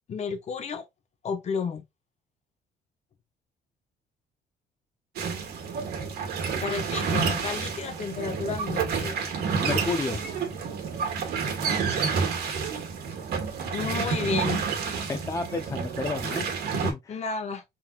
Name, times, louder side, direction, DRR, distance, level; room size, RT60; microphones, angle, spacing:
voice 1, 0.1-0.8 1.2-1.8 6.6-9.2 13.7-14.6 17.1-17.6, left 5 dB, 40° left, 0.9 m, -31 dB
sound 1, 5.2-16.9, right 5 dB, 70° right, 1.5 m, -29 dB
voice 2, 9.6-10.2 15.1-17.2, left 3 dB, 20° left, 0.5 m, -31 dB
4.4 x 3.6 x 2.4 m
cardioid pair, 110°, 17 cm